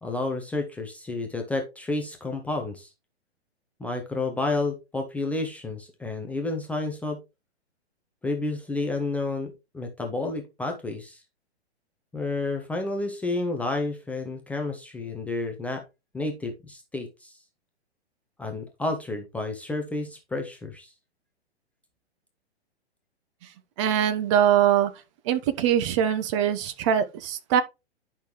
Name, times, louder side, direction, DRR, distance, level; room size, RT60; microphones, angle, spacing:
voice 1, 0.0-2.9 3.8-7.2 8.2-11.2 12.1-15.8 16.1-17.4 18.4-20.9, left 2 dB, 5° left, 0.7 m, -30 dB
voice 2, 23.8-24.9 25.3-27.6, right 9 dB, 25° right, 0.8 m, -22 dB
10.5 x 5.8 x 3.0 m
figure-of-eight pair, 115°, 34 cm